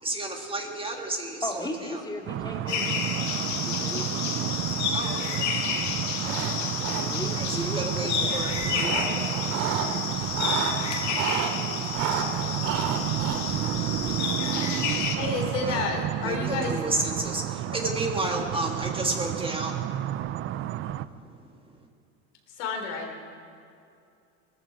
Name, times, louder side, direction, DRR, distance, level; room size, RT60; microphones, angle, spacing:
voice 1, 0.0-2.0 4.9-5.5 6.2-6.6 7.3-9.2 14.4-14.8 15.5-15.9 16.2-19.7 21.3-21.4, right 2 dB, 15° right, 2 dB, 1.7 m, -32 dB
voice 2, 1.4-3.3 3.6-4.3 6.8-9.4, left 1 dB, 10° left, 1 dB, 2.2 m, -37 dB
sound 1, 2.3-21.1, right 12 dB, 35° right, 0.5 m, -31 dB
sound 2, 2.7-15.2, left 6 dB, 50° left, 1.8 m, -31 dB
sound 3, 6.1-6.5 6.8-7.4 8.4-9.9 10.2-11.5 11.9-14.9, right 7 dB, 60° right, 2.4 m, -31 dB
voice 3, 15.2-16.8 17.7-17.8 22.6-23.2, left 4 dB, 80° left, 2 dB, 3.6 m, -30 dB
19.0 x 14.0 x 4.9 m, 2.6 s
supercardioid pair, 115°, 36 cm